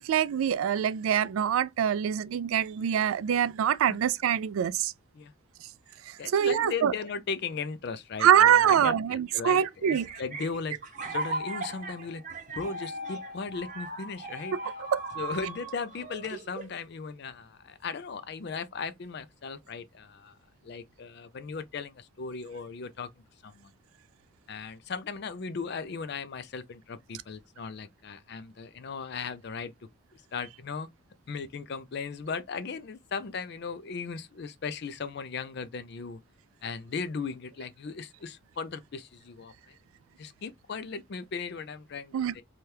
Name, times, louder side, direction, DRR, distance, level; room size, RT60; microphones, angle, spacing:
voice 1, 0.0-4.9 6.1-6.9 8.2-10.1 14.5-15.0 42.1-42.3, right 9 dB, 85° right, 0.3 m, -24 dB
voice 2, 6.2-9.6 9.9-10.8 11.0-12.2 12.5-14.5 15.2-20.3 20.6-23.1 23.4-23.7 24.5-29.7 30.3-30.9 31.3-36.2 36.6-39.7 40.2-42.4, left 5 dB, 55° left, 0.4 m, -37 dB
sound 1, 9.3-16.8, right 2 dB, 40° right, 0.7 m, -38 dB
2.8 x 2.3 x 3.2 m
head